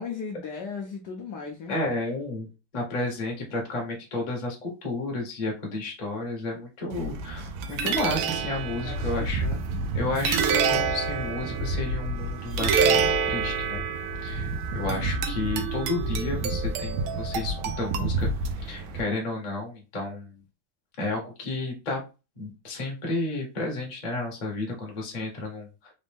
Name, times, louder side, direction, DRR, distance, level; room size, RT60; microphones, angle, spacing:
voice 1, 0.0-1.8 8.8-9.9, left 5 dB, 65° left, 0 dB, 1.1 m, -37 dB
voice 2, 1.7-2.5 2.7-9.4 9.9-13.8 14.2-18.3 18.6-20.3 21.0-22.0 22.4-25.9, left 2 dB, 30° left, 0 dB, 0.8 m, -32 dB
sound 1, 6.9-19.0, right 4 dB, 85° right, 1.4 m, -27 dB
4.0 x 2.6 x 3.4 m, 0.30 s
omnidirectional pair, 2.2 m